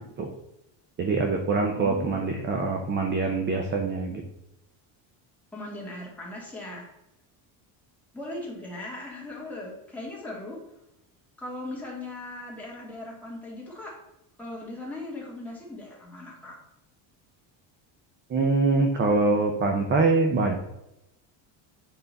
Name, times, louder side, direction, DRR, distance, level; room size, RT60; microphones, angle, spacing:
voice 1, 1.0-4.2 18.3-20.6, right 3 dB, 25° right, 3 dB, 0.6 m, -24 dB
voice 2, 1.8-2.5 5.5-6.9 8.1-10.6 11.4-13.9 14.4-16.6, left 2 dB, 5° left, -5 dB, 1.9 m, -38 dB
8.0 x 4.0 x 4.0 m, 0.88 s
cardioid pair, 155°, 48 cm